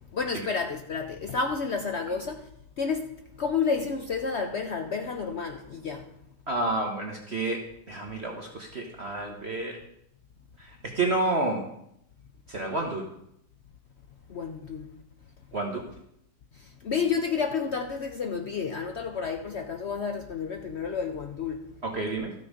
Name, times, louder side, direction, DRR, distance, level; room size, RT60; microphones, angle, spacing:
voice 1, 0.1-2.5 2.8-3.1 3.4-6.1 14.3-14.9 16.6-21.7, left 5 dB, 80° left, 0.6 m, -30 dB
voice 2, 6.5-7.6 7.9-9.8 10.6-11.6 12.5-13.0 15.5-15.8 21.8-22.3, right 2 dB, 40° right, 1.2 m, -30 dB
13.0 x 6.3 x 5.0 m
omnidirectional pair, 2.0 m